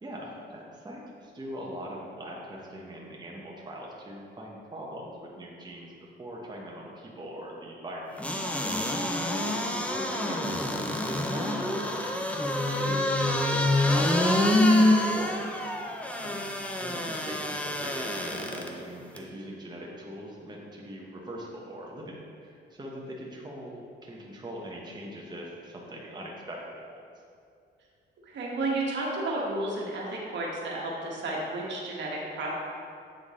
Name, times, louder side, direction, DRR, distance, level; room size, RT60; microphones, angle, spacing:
voice 1, 0.0-8.2 8.5-9.1 9.4-12.1 12.7-15.5 15.9-16.4 16.8-26.9, equal, 20° right, -3 dB, 1.0 m, -41 dB
sound 1, 8.2-18.7 19.2-19.3, left 1 dB, 5° left, 0.6 m, -26 dB
voice 2, 9.0-9.4 16.4-16.6 28.2-32.6, right 2 dB, 65° right, -3 dB, 1.3 m, -32 dB
8.0 x 3.8 x 3.6 m, 2.4 s
cardioid pair, 90°, 20 cm